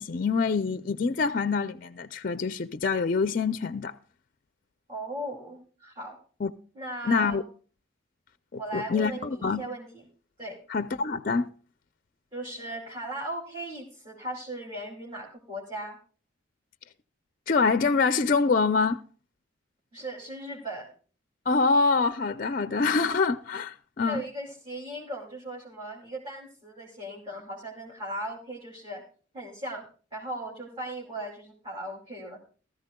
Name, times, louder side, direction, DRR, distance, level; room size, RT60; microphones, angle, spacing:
voice 1, 0.0-3.9 6.4-6.5 7.1-7.4 8.5-9.6 10.7-11.5 17.5-19.0 21.5-24.2, left 4 dB, 45° left, 0.4 m, -25 dB
voice 2, 4.9-6.2 6.7-7.4 8.6-10.0 10.4-10.6 12.3-16.0 19.9-20.9 24.0-29.0 29.3-29.9 30.1-32.4, right 1 dB, 25° right, 2.7 m, -37 dB
19.0 x 13.5 x 2.2 m
head